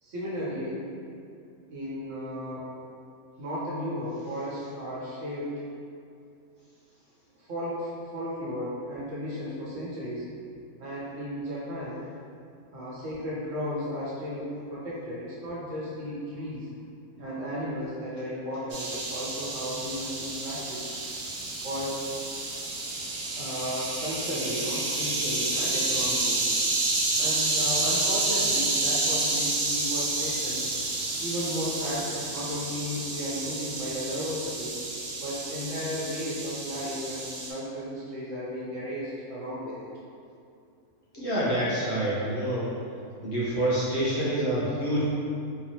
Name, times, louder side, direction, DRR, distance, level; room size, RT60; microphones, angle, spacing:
voice 1, 0.0-0.8 1.7-2.6 3.4-5.6 7.4-10.3 10.8-12.0 12.7-16.7 17.2-20.8 21.6-22.0 23.4-26.5 27.2-30.7 31.2-34.8 35.2-39.7, equal, 60° right, -8 dB, 1.2 m, -34 dB
sound 1, 18.7-37.5, right 2 dB, 80° right, 1.3 m, -30 dB
voice 2, 41.1-42.7 43.2-45.0, right 1 dB, 55° left, -8 dB, 0.9 m, -27 dB
3.9 x 3.1 x 2.8 m, 2.5 s
omnidirectional pair, 1.6 m